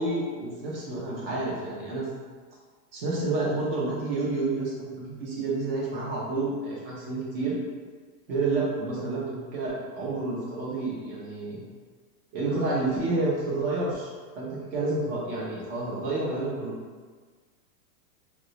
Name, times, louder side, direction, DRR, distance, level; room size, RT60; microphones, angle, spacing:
voice 1, 0.0-2.1 2.9-7.6 8.3-11.6 12.3-16.7, right 2 dB, 35° right, -6 dB, 0.7 m, -29 dB
2.2 x 2.0 x 3.8 m, 1.5 s
supercardioid pair, 175°, 48 cm